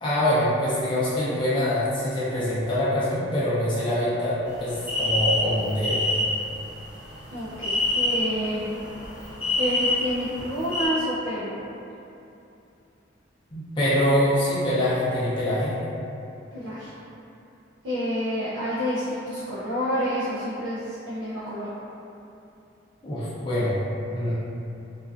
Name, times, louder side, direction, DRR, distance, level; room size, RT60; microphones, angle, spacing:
voice 1, 0.0-6.0 13.5-15.7 23.0-23.8 24.1-24.3, left 1 dB, 25° left, -10 dB, 0.4 m, -24 dB
sound 1, 4.5-10.9, left 1 dB, 5° right, 0.8 m, -27 dB
voice 2, 7.3-8.7 9.6-11.5 16.5-16.9 17.8-21.7, equal, 85° right, -11 dB, 0.5 m, -29 dB
2.4 x 2.2 x 2.4 m, 2.7 s
head